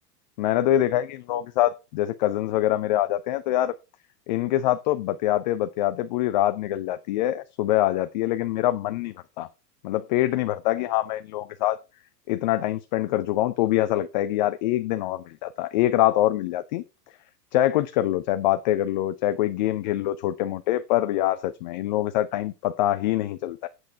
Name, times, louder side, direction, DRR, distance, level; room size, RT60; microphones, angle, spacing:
voice 1, 0.4-3.7 4.3-9.5 9.8-11.8 12.3-16.8 17.5-23.7, left 14 dB, 30° left, 0.5 m, -24 dB
8.2 x 8.0 x 4.4 m
figure-of-eight pair, 100°, 49 cm